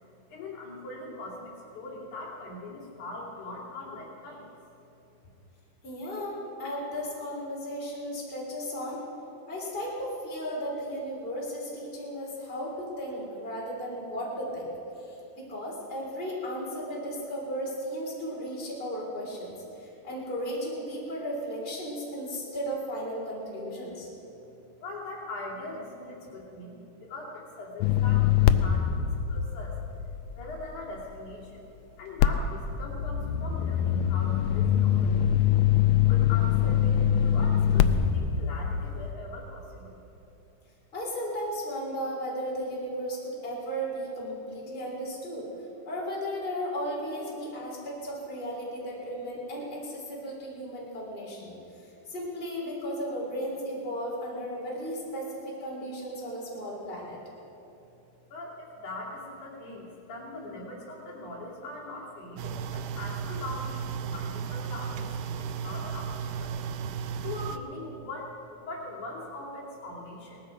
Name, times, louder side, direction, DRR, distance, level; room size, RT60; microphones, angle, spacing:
voice 1, 0.3-4.5 24.8-29.0 29.3-29.8 30.1-31.6 32.0-35.4 36.1-40.0 58.3-66.5 67.2-70.4, left 2 dB, 70° left, -5 dB, 4.0 m, -41 dB
voice 2, 5.8-9.0 9.5-24.1 40.9-45.5 45.8-51.5 51.8-57.2, equal, 15° left, -4 dB, 3.3 m, -35 dB
sound 1, 27.8-31.0 32.2-39.1, left 9 dB, 85° left, 1.5 m, -24 dB
sound 2, 62.4-67.6, right 7 dB, 90° right, 1.4 m, -34 dB
18.5 x 14.0 x 5.1 m, 2.9 s
omnidirectional pair, 3.7 m